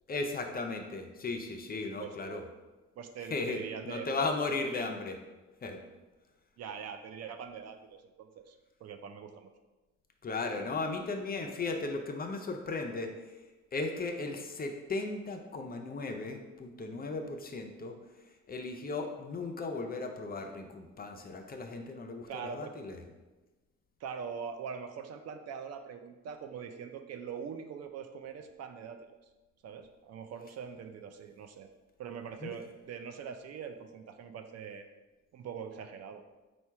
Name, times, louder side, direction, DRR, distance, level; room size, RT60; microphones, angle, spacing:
voice 1, 0.1-2.4 3.3-5.2 5.6-5.8 10.2-13.1 13.7-18.0 18.5-23.0 32.4-32.5, left 3 dB, 30° left, 4 dB, 0.5 m, -36 dB
voice 2, 2.0-2.4 3.0-4.1 4.5-5.0 6.6-8.6 8.8-9.5 22.3-22.7 24.0-29.0 29.6-31.7 32.0-34.8 35.3-36.2, right 7 dB, 60° right, 7 dB, 0.5 m, -43 dB
4.3 x 2.3 x 4.5 m, 1.2 s
cardioid pair, 90°, 30 cm